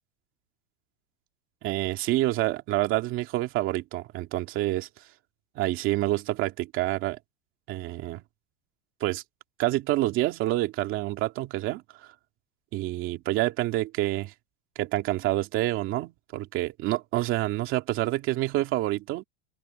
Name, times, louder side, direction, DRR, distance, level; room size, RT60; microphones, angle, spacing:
voice 1, 1.6-4.9 5.6-7.2 7.7-8.2 9.0-9.2 9.6-12.1 12.7-14.3 14.8-19.2, right 16 dB, 30° right, 2.3 m, -27 dB
open air
supercardioid pair, 170°, 39 cm